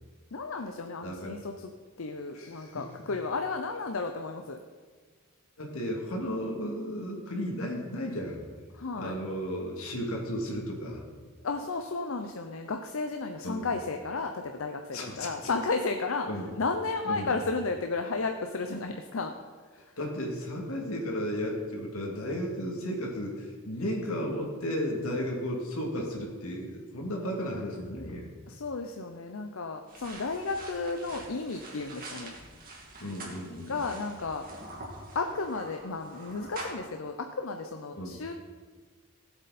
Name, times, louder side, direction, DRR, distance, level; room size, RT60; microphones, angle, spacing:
voice 1, 0.3-1.7 2.0-4.6 8.7-9.2 11.4-16.3 16.6-19.3 19.7-19.8 28.5-32.4 33.7-34.5 35.1-38.3, left 3 dB, 70° left, 5 dB, 0.7 m, -33 dB
voice 2, 1.0-1.4 2.3-2.9 5.6-8.4 8.9-11.0 13.4-13.7 14.9-15.5 16.3-16.5 17.0-17.3 20.0-28.3 33.0-33.8 37.9-38.2, equal, 85° left, 0 dB, 2.6 m, -34 dB
sound 1, 29.9-36.8, right 2 dB, 45° right, 2.5 m, -45 dB
18.0 x 8.0 x 4.3 m, 1.5 s
head